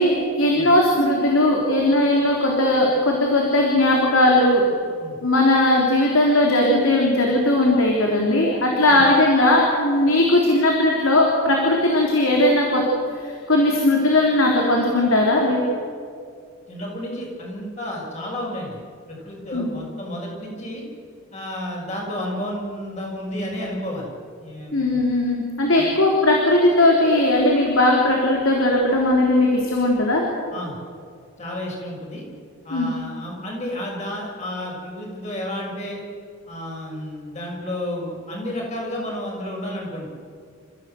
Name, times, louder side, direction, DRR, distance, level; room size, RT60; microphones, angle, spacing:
voice 1, 0.0-4.6 5.2-12.8 13.2-15.7 19.5-19.7 24.7-30.2 32.7-32.9, left 1 dB, 75° left, -1 dB, 3.6 m, -18 dB
voice 2, 16.7-18.8 19.1-20.8 21.3-24.1 24.4-25.0 25.8-25.9 30.5-30.8 31.4-32.2 32.6-36.0 36.5-40.1, left 1 dB, 30° left, -2 dB, 6.6 m, -31 dB
29.5 x 15.5 x 7.9 m, 2.2 s
head